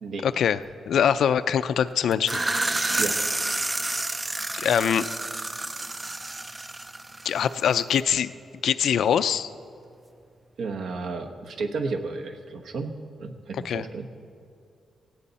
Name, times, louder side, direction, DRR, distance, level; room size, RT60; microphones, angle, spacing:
voice 1, 0.2-0.6 0.9-2.4 4.6-5.1 7.2-8.3 8.6-9.5 13.6-13.8, left 8 dB, 70° left, 13 dB, 0.4 m, -23 dB
sound 1, 2.1-7.7, right 2 dB, 15° right, 0.4 m, -29 dB
voice 2, 10.6-14.1, right 3 dB, 65° right, 4 dB, 1.1 m, -32 dB
17.5 x 16.5 x 4.2 m, 2.5 s
wide cardioid pair, 150°, 0 cm